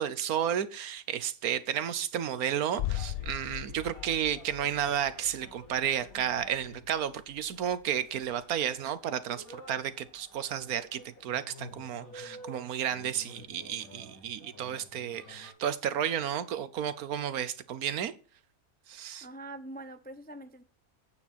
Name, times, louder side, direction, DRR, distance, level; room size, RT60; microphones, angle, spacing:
voice 1, 0.0-18.1 18.9-19.3, right 9 dB, 85° right, 14 dB, 1.4 m, -32 dB
sound 1, 2.7-15.5, left 1 dB, 90° left, 3.7 m, -52 dB
sound 2, 2.8-8.5 8.8-8.9, left 14 dB, 60° left, 0.7 m, -40 dB
voice 2, 19.2-20.6, right 1 dB, 15° left, 10 dB, 0.3 m, -44 dB
9.8 x 8.8 x 4.3 m, 0.36 s
omnidirectional pair, 1.5 m